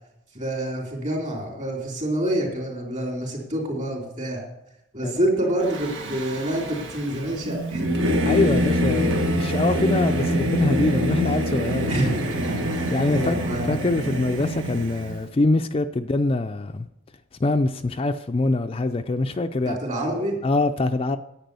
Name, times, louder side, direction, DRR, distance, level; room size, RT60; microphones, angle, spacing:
voice 1, 0.3-4.4 4.9-8.0 11.9-13.8 19.7-20.4, right 1 dB, 40° right, 3.6 m, -27 dB
Singing / Musical instrument, 5.6-15.2, equal, 75° right, 1.7 m, -25 dB
voice 2, 8.3-11.9 12.9-13.4 13.7-16.9 17.4-19.8 20.4-21.2, left 2 dB, 30° left, 0.4 m, -24 dB
10.0 x 9.0 x 6.8 m
head